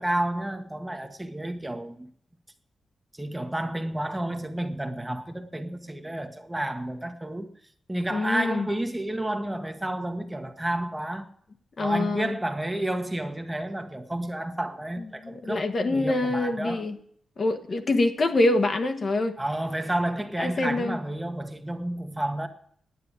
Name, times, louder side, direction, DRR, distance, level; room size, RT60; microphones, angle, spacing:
voice 1, 0.0-2.1 3.2-7.5 7.9-11.3 11.8-16.8 19.4-22.5, right 1 dB, 10° right, 1.2 m, -31 dB
voice 2, 8.1-8.7 11.8-12.4 15.2-17.0 17.4-19.3 20.4-21.0, left 2 dB, 45° left, 1.4 m, -25 dB
10.0 x 9.5 x 8.6 m
wide cardioid pair, 110°, 0 cm